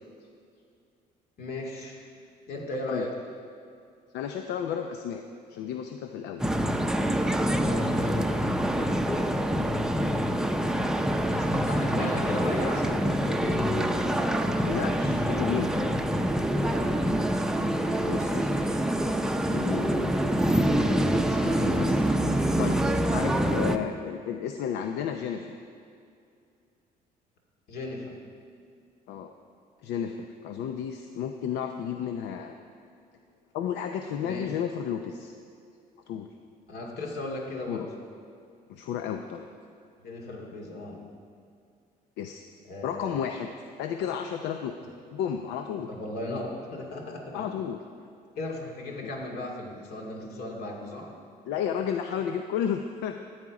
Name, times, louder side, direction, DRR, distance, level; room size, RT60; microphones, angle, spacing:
voice 1, 1.4-2.1 2.5-3.1 7.5-9.1 11.3-13.7 16.6-17.1 27.7-28.2 34.2-34.5 36.7-37.9 40.0-41.0 42.6-43.2 44.8-44.9 45.8-47.5 48.4-51.1, left 1 dB, 65° left, 0 dB, 2.4 m, -36 dB
voice 2, 4.1-5.2 5.5-6.4 14.6-15.7 18.1-18.7 19.5-20.2 20.6-22.8 23.1-25.5 29.1-29.3 29.8-32.6 33.5-35.3 36.1-36.3 37.7-37.9 38.7-39.5 42.2-42.4 42.8-43.5 43.8-44.7 45.1-45.9 47.3-47.8 51.5-53.1, left 8 dB, 85° left, 6 dB, 0.6 m, -33 dB
sound 1, 6.4-23.8, right 1 dB, 5° right, 0.6 m, -26 dB
14.0 x 8.8 x 4.8 m, 2.4 s
cardioid pair, 110°, 17 cm